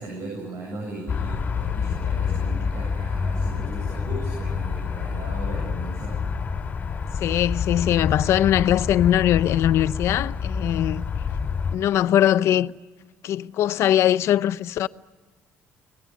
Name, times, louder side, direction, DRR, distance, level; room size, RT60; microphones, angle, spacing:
voice 1, 0.0-6.2, right 2 dB, 60° right, 7.8 m, -37 dB
sound 1, 1.1-11.8, left 6 dB, 30° left, 2.7 m, -27 dB
voice 2, 7.2-11.0 11.7-12.7 13.2-14.9, left 11 dB, 60° left, 0.7 m, -21 dB
25.5 x 19.0 x 9.5 m
cardioid pair, 150°, 5 cm